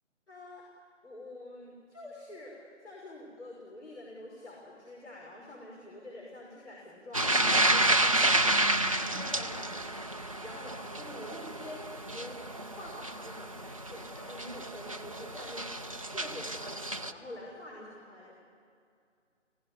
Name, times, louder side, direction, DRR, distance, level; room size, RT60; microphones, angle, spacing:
voice 1, 0.3-0.6 1.0-8.6 9.1-9.8 10.4-12.4 12.8-15.7 16.1-16.8 17.1-18.3, left 1 dB, 60° left, -3 dB, 5.7 m, -46 dB
sound 1, 7.1-17.1, right 1 dB, 30° right, 0.6 m, -30 dB
29.0 x 18.0 x 9.9 m, 2.4 s
figure-of-eight pair, 150°, 37 cm